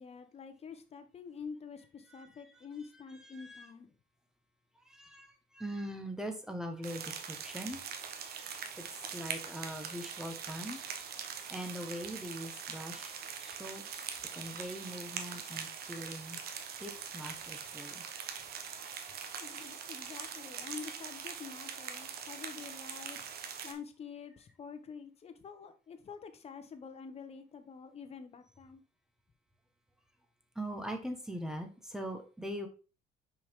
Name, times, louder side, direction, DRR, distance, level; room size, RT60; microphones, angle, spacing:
voice 1, 0.0-3.9 19.4-23.3 23.6-28.8, left 6 dB, 35° left, 1.1 m, -47 dB
voice 2, 3.3-3.7 4.9-8.8 9.1-10.8 11.5-13.1 13.4-13.8 14.3-16.4 16.8-18.0 18.8-18.9 30.5-32.7, equal, 5° right, 1.3 m, -42 dB
sound 1, 6.8-23.7, right 7 dB, 65° right, 1.1 m, -43 dB
5.8 x 4.9 x 3.7 m
cardioid pair, 110°, 17 cm